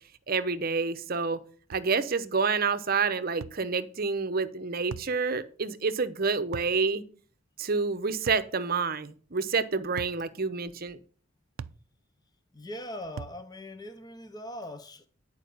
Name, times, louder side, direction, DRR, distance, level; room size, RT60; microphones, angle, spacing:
voice 1, 0.3-1.4 1.7-7.0 7.6-11.0, right 4 dB, 45° right, 0.8 m, -28 dB
sound 1, 1.7-1.9 3.4-3.6 4.9-5.2 6.5-6.8 8.3-8.5 10.0-10.2 11.6-11.8 13.2-13.4, right 6 dB, 75° right, 0.4 m, -40 dB
voice 2, 12.5-15.1, left 1 dB, 20° left, 0.7 m, -41 dB
10.5 x 4.7 x 6.9 m
head